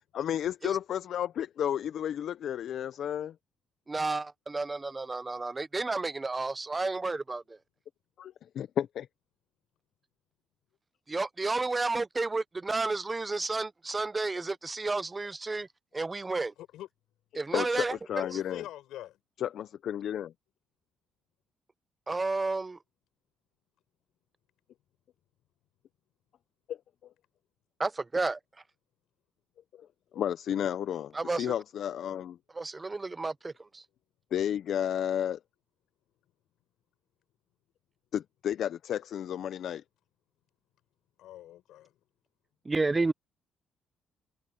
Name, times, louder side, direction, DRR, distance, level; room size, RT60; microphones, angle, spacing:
voice 1, 0.1-3.3 8.2-9.1 17.5-18.6 19.4-20.3 26.7-26.8 29.8-29.9 30.1-32.4 34.3-35.4 38.1-39.8, left 10 dB, 70° left, 0.5 m, -32 dB
voice 2, 3.9-7.6 11.1-15.7 15.9-16.5 17.3-17.9 22.1-22.8 27.8-28.4 31.1-31.5 32.5-33.8 42.7-43.1, right 3 dB, 25° right, 0.5 m, -31 dB
voice 3, 18.2-19.2 41.2-41.9, left 13 dB, 85° left, 4.6 m, -44 dB
cardioid pair, 90°, 0 cm